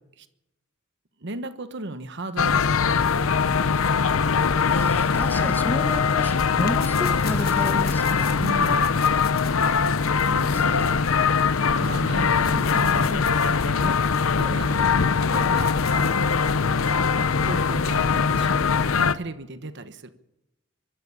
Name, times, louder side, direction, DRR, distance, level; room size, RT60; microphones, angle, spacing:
voice 1, 1.2-3.5 8.4-8.8 10.2-10.8 11.7-14.9 15.2-16.5 17.4-20.1, right 2 dB, 60° right, 10 dB, 1.2 m, -36 dB
sound 1, 2.4-19.1, left 5 dB, 85° left, 0.7 m, -22 dB
voice 2, 4.4-8.3 10.4-10.9 14.7-14.9, left 1 dB, 10° left, 8 dB, 1.5 m, -33 dB
sound 2, 6.6-11.9 12.2-16.3, left 6 dB, 50° left, 1.4 m, -40 dB
24.5 x 12.5 x 8.8 m, 0.89 s
head